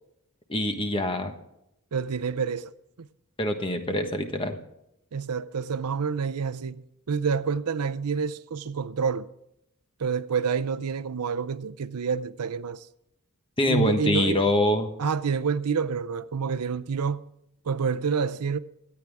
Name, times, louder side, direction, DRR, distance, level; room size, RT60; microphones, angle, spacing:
voice 1, 0.5-1.3 3.4-4.6 13.6-14.9, left 1 dB, 25° left, 1.2 m, -25 dB
voice 2, 1.9-2.7 3.0-3.1 5.1-9.3 10.0-12.9 13.7-14.4 15.0-17.3 17.7-18.6, right 6 dB, 85° right, 0.6 m, -28 dB
24.0 x 9.0 x 3.5 m
head